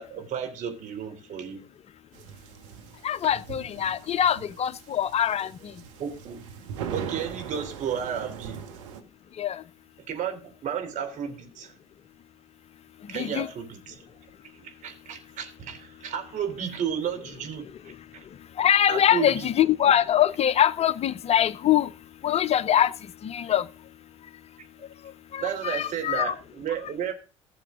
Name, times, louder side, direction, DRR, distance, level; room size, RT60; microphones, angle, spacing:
voice 1, 0.0-1.6 6.0-6.4 6.9-8.6 10.1-11.7 13.1-14.0 14.5-18.2 18.9-19.5 25.4-27.1, right 8 dB, 55° right, 3.2 m, -33 dB
sound 1, 2.1-9.0, right 8 dB, 75° right, 1.5 m, -40 dB
voice 2, 3.0-5.7 9.4-9.6 13.1-13.5 18.6-21.9 22.2-22.9 23.2-23.7 25.3-26.3, left 10 dB, 40° left, 0.7 m, -23 dB
16.0 x 6.9 x 3.6 m
hypercardioid pair, 60°, 16 cm